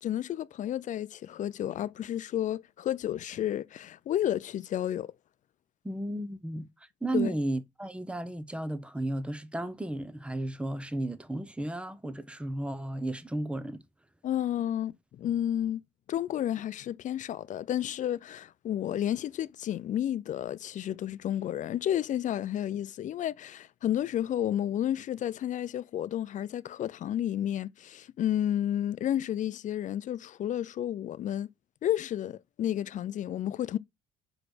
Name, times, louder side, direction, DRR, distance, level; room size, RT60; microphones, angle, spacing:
voice 1, 0.0-5.1 7.1-7.3 14.2-15.8 16.1-31.5 31.8-33.8, left 11 dB, 50° left, 0.5 m, -31 dB
voice 2, 5.8-6.7 7.0-13.8, right 1 dB, 5° right, 0.8 m, -34 dB
4.9 x 4.8 x 6.2 m
cardioid pair, 110°, 17 cm